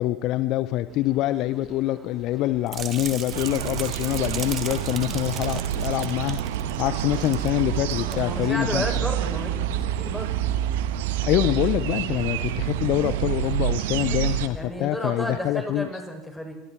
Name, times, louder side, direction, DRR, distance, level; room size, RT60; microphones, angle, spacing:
voice 1, 0.0-6.4 6.8-8.8 11.2-15.9, left 15 dB, 50° left, 14 dB, 0.8 m, -25 dB
sound 1, 0.9-13.6, right 3 dB, 20° right, 4.4 m, -47 dB
sound 2, 2.7-7.5 7.8-8.1 8.6-8.7, right 8 dB, 35° right, 2.6 m, -37 dB
sound 3, 3.3-14.5, right 12 dB, 65° right, 1.4 m, -28 dB
voice 2, 8.1-10.4 14.0-14.2 14.5-16.5, equal, 5° left, 2 dB, 7.2 m, -32 dB
28.0 x 24.0 x 4.7 m, 0.94 s
figure-of-eight pair, 75°, 0 cm